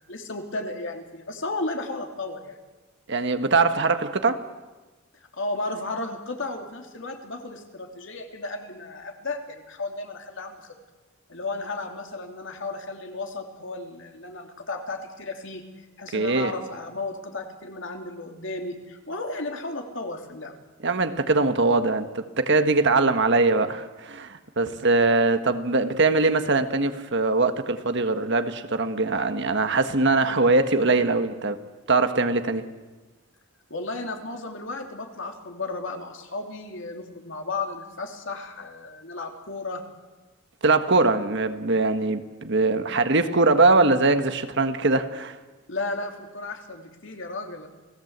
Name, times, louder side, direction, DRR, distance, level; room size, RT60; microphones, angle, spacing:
voice 1, 0.1-2.6 5.3-10.7 11.3-15.6 16.0-20.5 33.7-39.8 45.7-47.7, left 2 dB, 60° left, 4 dB, 3.0 m, -34 dB
voice 2, 3.1-4.4 16.1-16.5 20.8-31.6 31.9-32.7 40.6-45.4, right 3 dB, 55° right, 9 dB, 1.5 m, -22 dB
29.0 x 18.0 x 8.1 m, 1.2 s
head